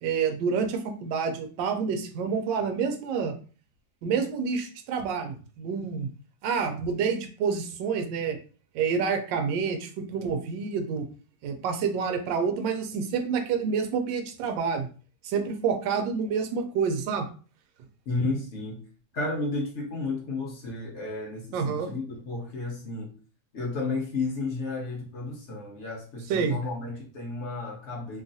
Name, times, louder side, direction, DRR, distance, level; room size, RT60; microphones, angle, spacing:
voice 1, 0.0-3.4 4.0-6.1 6.4-8.4 8.7-11.1 11.4-14.9 15.2-17.3 21.5-21.9 26.3-26.6, right 6 dB, 80° right, 5 dB, 1.2 m, -28 dB
voice 2, 18.1-18.8 19.1-23.1 23.5-28.2, left 3 dB, 55° left, -2 dB, 0.8 m, -32 dB
3.1 x 2.3 x 2.6 m, 0.38 s
omnidirectional pair, 2.0 m